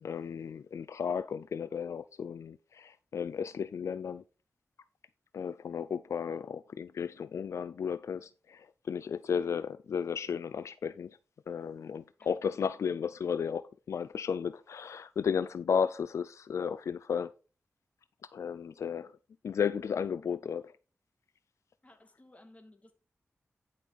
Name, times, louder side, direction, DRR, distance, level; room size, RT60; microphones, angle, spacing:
voice 1, 0.0-4.2 5.3-11.1 11.5-17.3 18.3-19.1 19.4-20.7, left 7 dB, 80° left, 0.4 m, -34 dB
voice 2, 21.8-22.9, left 1 dB, 30° left, 2.5 m, -57 dB
11.0 x 5.7 x 4.1 m
cardioid pair, 70°, 5 cm